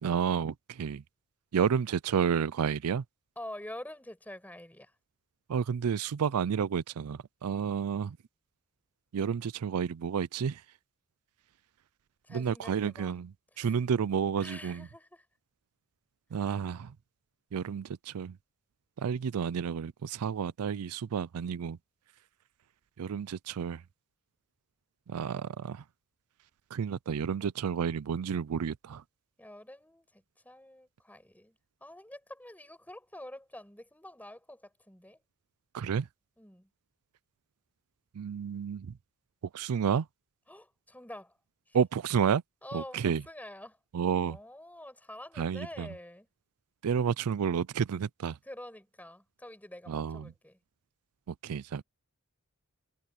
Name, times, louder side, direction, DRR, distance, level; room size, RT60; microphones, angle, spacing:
voice 1, 0.0-1.0 1.5-3.0 5.5-8.2 9.1-10.6 12.3-13.3 13.6-14.9 16.3-16.9 17.5-18.4 19.0-21.8 23.0-23.8 25.1-25.8 26.7-29.0 35.7-36.1 38.1-38.9 39.5-40.1 41.7-42.4 42.7-43.2 43.9-44.4 45.4-45.9 46.8-48.4 49.9-50.3 51.3-51.8, right 7 dB, 80° right, 0.4 m, -30 dB
voice 2, 3.4-5.0 12.2-13.2 13.5-13.8 14.4-15.3 29.4-35.2 36.4-36.7 40.5-41.4 41.7-41.8 42.6-43.8 44.2-46.3 48.4-50.6, left 1 dB, 5° left, 7.0 m, -47 dB
head